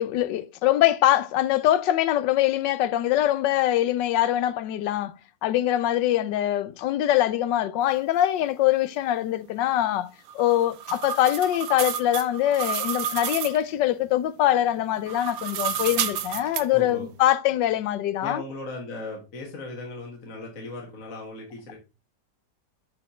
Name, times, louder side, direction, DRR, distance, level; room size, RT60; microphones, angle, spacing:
voice 1, 0.0-5.1 5.4-10.1 10.3-18.4, left 13 dB, 85° left, 1.3 m, -23 dB
sound 1, 10.3-13.6 15.0-16.7, right 9 dB, 70° right, 0.9 m, -30 dB
voice 2, 16.7-17.1 18.2-21.7, left 2 dB, 50° left, 1.9 m, -37 dB
9.1 x 4.3 x 4.3 m
omnidirectional pair, 1.9 m